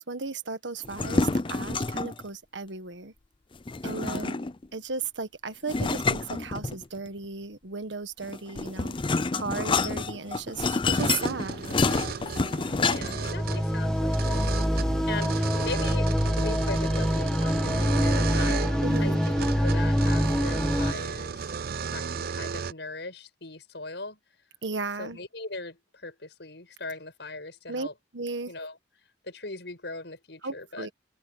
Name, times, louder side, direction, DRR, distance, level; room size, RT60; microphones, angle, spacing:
voice 1, 0.0-3.1 3.8-4.4 4.7-9.0 9.3-11.6 18.8-19.2 24.6-25.2 27.7-27.9 28.1-28.5 30.4-30.9, right 4 dB, 85° right, 1.5 m, -35 dB
sound 1, 0.8-2.2 3.7-4.7 5.7-7.1 8.2-13.3, left 3 dB, 30° left, 0.5 m, -28 dB
voice 2, 3.8-4.5 11.5-12.0 12.8-14.6 15.0-18.6 19.0-19.2 19.6-24.2 25.0-27.9 28.5-28.8 29.2-30.9, left 3 dB, 70° left, 7.1 m, -39 dB
sound 2, 11.0-22.7, right 6 dB, 55° right, 0.5 m, -34 dB
sound 3, 12.9-20.9, equal, 5° left, 1.0 m, -25 dB
head